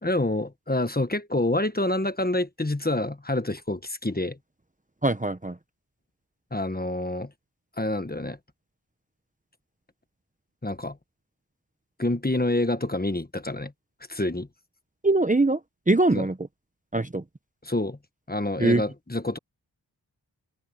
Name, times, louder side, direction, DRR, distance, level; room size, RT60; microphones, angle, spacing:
voice 1, 0.0-4.4 6.5-7.3 7.8-8.4 10.6-11.0 12.0-13.7 14.1-14.5 16.2-16.3 17.6-18.0 18.3-19.4, left 2 dB, 20° left, 1.4 m, -27 dB
voice 2, 5.0-5.6 15.0-15.6 15.9-16.4 16.9-17.2 18.6-18.8, right 2 dB, 20° right, 0.9 m, -22 dB
wide cardioid pair, 40°, 41 cm